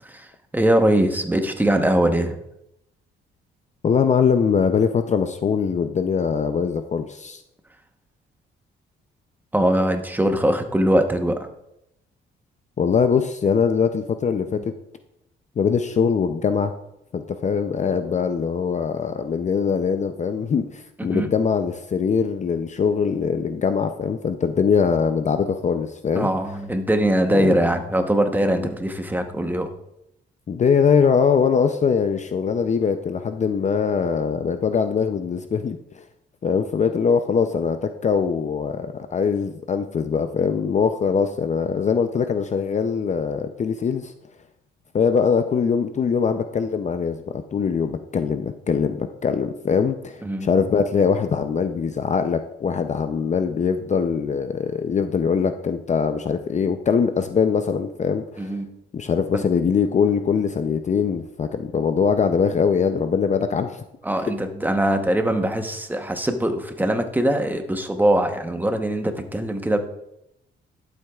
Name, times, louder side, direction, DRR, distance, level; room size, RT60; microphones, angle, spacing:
voice 1, 0.5-2.4 9.5-11.5 21.0-21.3 26.1-29.7 50.2-50.5 58.4-58.7 59.3-59.4 64.0-69.8, right 1 dB, 10° right, 6 dB, 1.0 m, -22 dB
voice 2, 3.8-7.4 12.8-14.6 15.6-16.7 17.1-26.3 27.3-27.6 30.5-35.8 36.4-44.1 44.9-47.2 47.5-58.5 58.9-63.8, left 6 dB, 35° left, 8 dB, 0.5 m, -22 dB
11.5 x 7.9 x 2.4 m, 0.82 s
cardioid pair, 90°, 20 cm